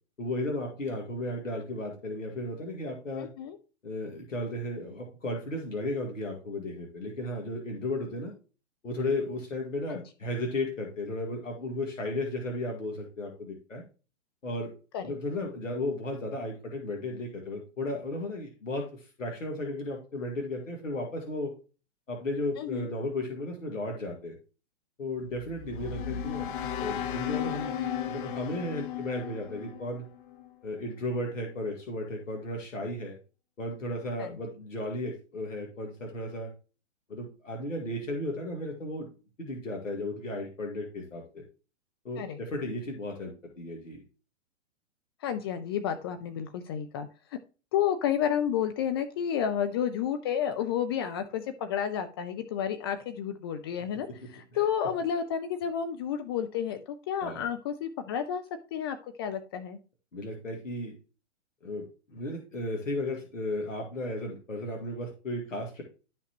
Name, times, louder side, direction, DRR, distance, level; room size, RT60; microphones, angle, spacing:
voice 1, 0.2-3.3 3.8-8.3 8.8-13.8 14.4-14.7 15.0-21.5 22.1-24.3 25.0-26.5 26.8-27.7 28.1-30.0 30.6-33.2 33.6-36.5 37.1-39.1 39.4-41.4 42.0-44.0 54.5-54.6 57.2-57.5 60.1-60.9 61.6-65.8, left 1 dB, 90° left, 1 dB, 2.2 m, -34 dB
voice 2, 3.2-3.6 9.9-10.0 14.9-15.2 22.6-22.9 34.2-34.4 42.1-42.4 45.2-47.1 47.7-58.4 58.7-59.8, left 8 dB, 20° left, 8 dB, 0.4 m, -31 dB
sound 1, 25.3-30.5, left 9 dB, 40° left, 0.9 m, -35 dB
11.5 x 5.9 x 3.0 m, 0.34 s
hypercardioid pair, 120°, 38 cm